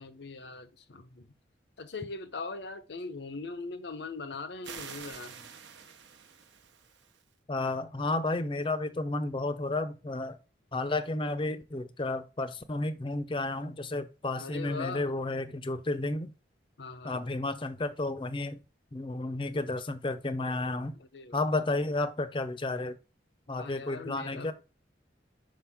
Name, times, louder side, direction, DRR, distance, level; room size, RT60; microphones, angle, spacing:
voice 1, 0.0-1.3 1.8-5.5 14.4-15.1 16.8-17.3 20.9-21.4 23.5-24.5, left 3 dB, 70° left, 0.7 m, -41 dB
sound 1, 4.6-7.2, right 7 dB, 80° right, 0.8 m, -47 dB
voice 2, 7.5-10.4 10.7-16.3 17.0-18.6 18.9-21.0 21.3-23.0 23.5-24.5, left 2 dB, 25° left, 0.5 m, -32 dB
5.7 x 5.2 x 3.4 m
head